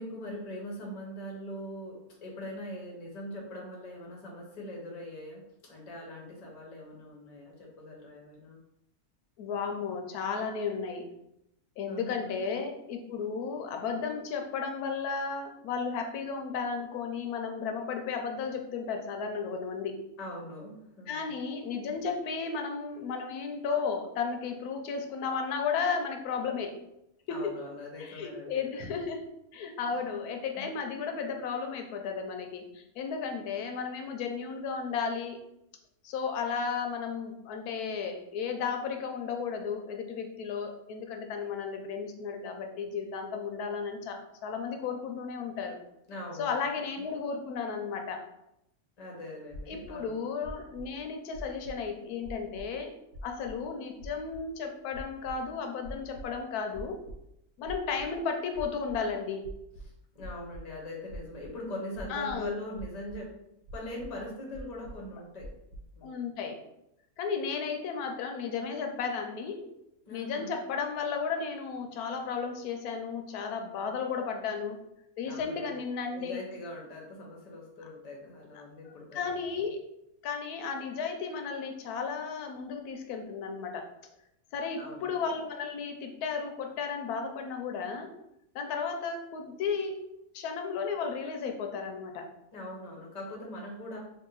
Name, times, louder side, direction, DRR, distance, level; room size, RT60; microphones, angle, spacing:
voice 1, 0.0-8.6 9.7-10.1 11.9-12.3 20.2-21.3 27.3-28.7 29.8-30.0 30.5-30.6 46.1-46.6 49.0-50.2 60.1-63.3 63.7-65.5 66.0-66.2 70.1-70.6 75.2-75.8 76.1-79.2 84.8-85.2 92.5-94.0, left 1 dB, 35° left, -1 dB, 0.7 m, -42 dB
voice 2, 9.4-11.0 11.8-20.0 21.1-26.8 27.3-27.5 28.0-29.2 29.5-35.4 36.0-45.8 46.4-48.2 49.7-52.9 53.2-57.0 57.6-59.4 62.1-62.6 66.0-66.6 67.2-69.7 70.1-74.8 75.2-76.4 79.1-79.8 80.2-83.9 84.5-88.1 88.5-90.0 90.3-92.3, left 5 dB, 85° left, 4 dB, 1.1 m, -34 dB
sound 1, 49.5-49.9 50.4-50.9 51.3-51.9 52.2-52.7 53.1-53.6 54.0-54.4 54.9-55.4 55.8-56.3 56.7-57.2 57.6-58.2 58.5-59.0 59.4-60.6 61.1-61.5 61.9-62.5 62.7-63.2 63.6-64.1 64.5-65.0 65.4-65.8, equal, 70° right, 1.0 m, -43 dB
2.8 x 2.7 x 3.8 m, 0.83 s
omnidirectional pair, 1.6 m